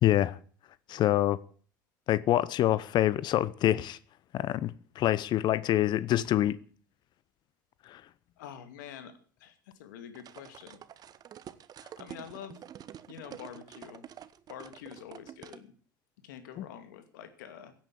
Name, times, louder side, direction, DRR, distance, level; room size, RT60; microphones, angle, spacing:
voice 1, 0.0-0.4 0.9-1.4 2.1-4.0 4.3-6.6 7.9-8.0 16.6-16.7, left 13 dB, 45° left, 0.8 m, -26 dB
voice 2, 8.4-9.1 9.4-10.8 11.8-12.6 13.1-14.0 14.5-15.7 16.2-17.7, left 9 dB, 65° left, 2.5 m, -46 dB
sound 1, 10.1-15.6, right 10 dB, 35° right, 1.1 m, -48 dB
16.5 x 8.9 x 8.4 m
figure-of-eight pair, 75°, 11 cm